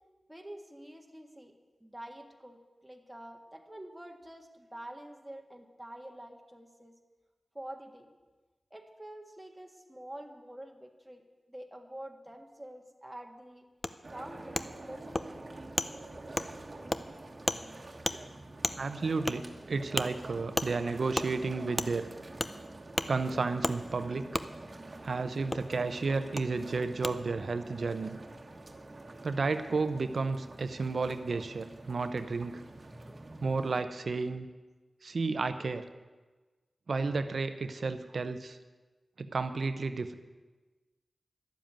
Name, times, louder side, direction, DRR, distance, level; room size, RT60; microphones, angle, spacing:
voice 1, 0.3-6.9 7.5-8.1 8.7-11.2 11.5-13.7 14.1-15.7, right 1 dB, 10° right, 2 dB, 1.7 m, -47 dB
Wood, 13.8-13.9 14.5-14.7 15.1-15.3 15.8-15.9 16.4-16.5 16.9-17.0 17.5-17.6 18.0-18.2 18.6-18.8 19.3-19.4 20.0-20.1 20.6-20.7 21.1-21.3 21.8-21.9 22.4-22.5 23.0-23.1 23.6-23.8 24.3-24.5 25.5-25.6 26.4-26.5 27.0-27.1, left 2 dB, 30° left, 0.6 m, -31 dB
sound 1, 14.0-33.8, right 2 dB, 45° right, 1.4 m, -47 dB
voice 2, 18.8-22.1 23.1-24.4 25.0-28.2 29.2-32.6 33.4-34.5 35.0-35.8 36.9-38.6 39.2-40.1, right 4 dB, 70° right, 10 dB, 0.7 m, -32 dB
11.5 x 7.4 x 9.0 m, 1.3 s
cardioid pair, 55°, 0 cm